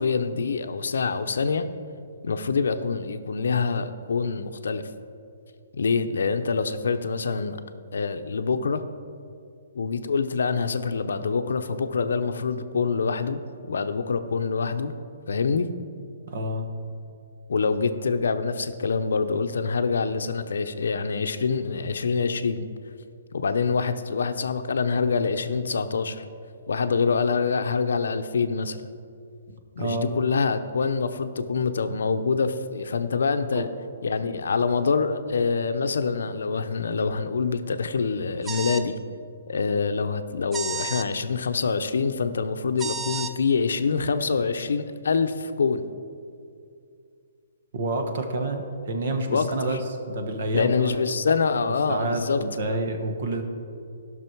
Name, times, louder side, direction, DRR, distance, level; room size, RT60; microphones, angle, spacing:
voice 1, 0.0-1.6 2.2-4.9 5.7-7.6 7.9-8.8 9.7-13.4 13.7-14.9 15.3-15.7 17.5-22.7 23.3-26.2 26.7-28.9 29.8-33.7 34.0-39.0 39.5-45.8 49.3-49.8 50.5-52.4 52.7-52.8, left 5 dB, 80° left, 9 dB, 0.7 m, -25 dB
voice 2, 16.3-16.6 29.8-30.1 33.5-33.6 47.7-49.8 50.1-50.7 51.9-53.4, right 2 dB, 45° right, 6 dB, 1.2 m, -28 dB
sound 1, 38.4-38.9 40.5-41.1 42.8-43.3, right 4 dB, 10° right, 0.3 m, -31 dB
15.5 x 6.2 x 4.6 m, 2.4 s
hypercardioid pair, 175°, 0 cm